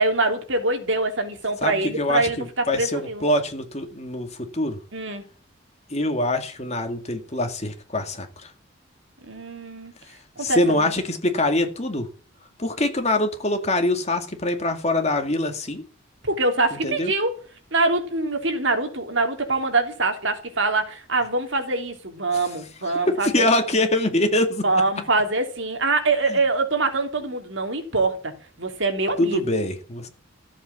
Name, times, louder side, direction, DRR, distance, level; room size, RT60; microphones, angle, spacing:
voice 1, 0.0-3.2 4.9-5.2 9.2-9.9 10.4-10.9 16.2-17.3 17.7-23.5 24.6-28.3 28.6-29.6, right 3 dB, 60° right, 3.0 m, -24 dB
voice 2, 1.6-4.8 5.9-8.5 10.4-12.1 12.6-15.8 16.7-17.1 22.3-22.4 22.9-24.7 26.3-26.4 29.2-30.1, left 1 dB, 30° left, 2.2 m, -24 dB
14.5 x 8.1 x 7.2 m
head